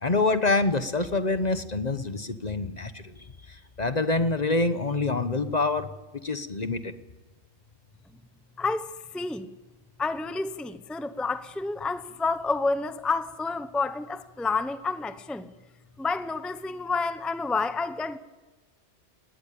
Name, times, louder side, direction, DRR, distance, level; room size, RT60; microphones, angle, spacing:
voice 1, 0.0-3.1 3.5-5.9 6.2-6.9, left 3 dB, 35° left, 11 dB, 1.0 m, -26 dB
voice 2, 8.6-9.5 10.0-15.5 16.0-18.2, left 3 dB, ahead, 12 dB, 0.7 m, -29 dB
19.5 x 18.5 x 8.6 m, 1.1 s
omnidirectional pair, 1.2 m